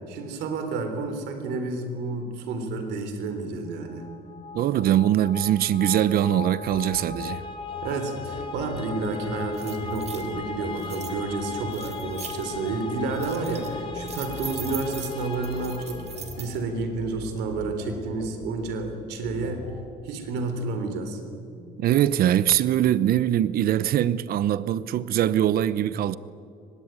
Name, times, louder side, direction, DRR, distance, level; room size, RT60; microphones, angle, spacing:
voice 1, 0.1-4.1 7.8-16.0 16.4-19.6 20.0-21.2, right 3 dB, 90° right, 3.7 m, -30 dB
sound 1, 3.9-16.7, left 4 dB, 30° left, 2.6 m, -37 dB
voice 2, 4.5-7.4 21.8-26.2, right 11 dB, 60° right, 0.8 m, -22 dB
sound 2, 6.7-19.8, left 5 dB, 80° left, 4.8 m, -43 dB
sound 3, 9.2-9.3 9.5-10.3 10.8-11.1 11.7-12.4 12.9-13.7 14.1-16.6, right 7 dB, 40° right, 3.3 m, -40 dB
24.0 x 20.5 x 9.1 m
cardioid pair, 110°, 17 cm